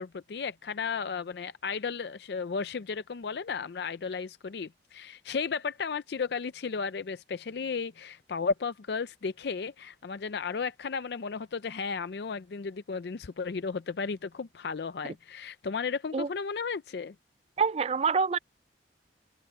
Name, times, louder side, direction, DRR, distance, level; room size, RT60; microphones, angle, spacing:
voice 1, 0.0-17.1, left 5 dB, 60° left, 0.4 m, -34 dB
voice 2, 17.6-18.4, right 5 dB, 35° right, 0.3 m, -26 dB
head